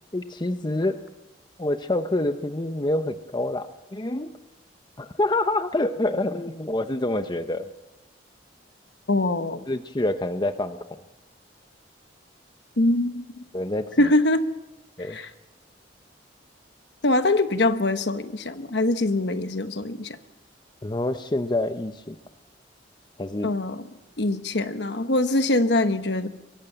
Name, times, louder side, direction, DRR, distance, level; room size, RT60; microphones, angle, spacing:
voice 1, 0.1-1.0 1.6-4.3 5.0-7.7 9.7-10.8 13.5-14.1 15.0-15.2 20.8-22.2 23.2-23.5, left 1 dB, 25° left, 9 dB, 0.8 m, -27 dB
voice 2, 9.1-9.6 12.8-13.4 14.0-14.4 15.0-15.3 17.0-20.2 23.4-23.8 24.2-26.3, left 2 dB, 65° left, 9 dB, 1.2 m, -23 dB
23.5 x 14.5 x 9.2 m, 1.0 s
head